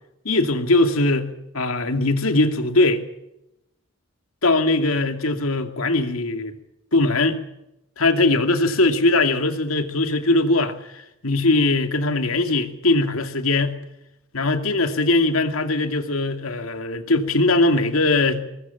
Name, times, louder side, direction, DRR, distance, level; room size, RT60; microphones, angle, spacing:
voice 1, 0.2-1.3 1.5-3.0 4.4-6.5 6.9-7.4 8.0-13.7 14.3-18.4, left 2 dB, 80° left, 7 dB, 2.5 m, -20 dB
21.5 x 21.0 x 7.0 m, 0.86 s
head